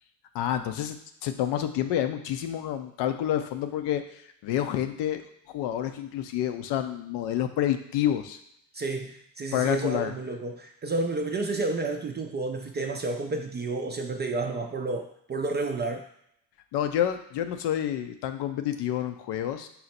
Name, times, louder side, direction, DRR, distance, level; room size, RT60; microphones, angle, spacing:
voice 1, 0.3-1.0 1.2-4.0 4.4-8.4 9.5-10.1 16.7-19.7, left 11 dB, 65° left, 8 dB, 0.5 m, -28 dB
voice 2, 8.7-16.0, right 3 dB, 25° right, 4 dB, 0.3 m, -31 dB
4.1 x 2.1 x 4.2 m, 0.75 s
hypercardioid pair, 60°, 47 cm